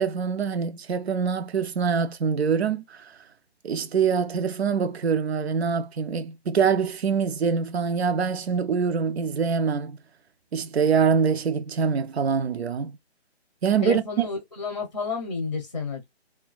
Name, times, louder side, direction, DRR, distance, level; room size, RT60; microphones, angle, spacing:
voice 1, 0.0-3.2 3.6-10.0 10.5-13.0 13.6-14.0, right 6 dB, 75° right, 0.6 m, -24 dB
voice 2, 13.8-16.0, left 4 dB, 30° left, 0.6 m, -30 dB
2.5 x 2.2 x 2.3 m
hypercardioid pair, 170°, 32 cm